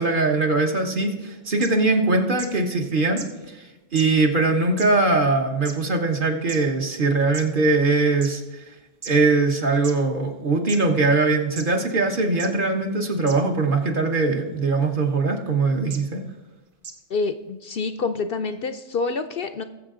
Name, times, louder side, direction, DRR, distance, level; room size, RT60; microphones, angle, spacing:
voice 1, 0.0-8.7 9.1-16.2, right 3 dB, 45° right, 3 dB, 1.3 m, -21 dB
sound 1, 1.6-1.7 2.4-2.5 3.2-3.3 4.0-4.1 4.8-4.9 5.7-5.8 6.5-6.6 7.3-7.4 8.2-8.3 9.0-9.1 9.8-9.9 10.7-10.8 11.6-11.7 12.4-12.5 13.3-13.4 14.6-14.8 15.9-16.0 16.8-16.9, right 5 dB, 85° right, 1.4 m, -35 dB
voice 2, 17.1-19.6, left 4 dB, 60° left, 10 dB, 0.7 m, -27 dB
20.0 x 7.5 x 3.8 m, 1.1 s
omnidirectional pair, 1.2 m